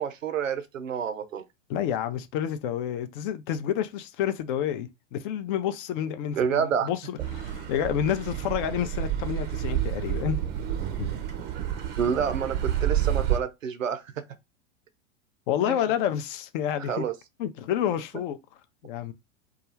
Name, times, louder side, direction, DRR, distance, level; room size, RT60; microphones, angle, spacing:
voice 1, 0.0-1.4 6.4-6.9 12.0-14.2 15.7-15.8 16.9-17.1, right 7 dB, 90° right, 0.5 m, -28 dB
voice 2, 1.7-10.4 11.0-11.1 15.5-17.0 17.4-18.4 18.8-19.1, left 10 dB, 45° left, 0.4 m, -29 dB
Car passing by / Accelerating revving vroom, 7.2-13.4, right 11 dB, 30° right, 0.5 m, -29 dB
2.3 x 2.3 x 3.0 m
hypercardioid pair, 95°, 38 cm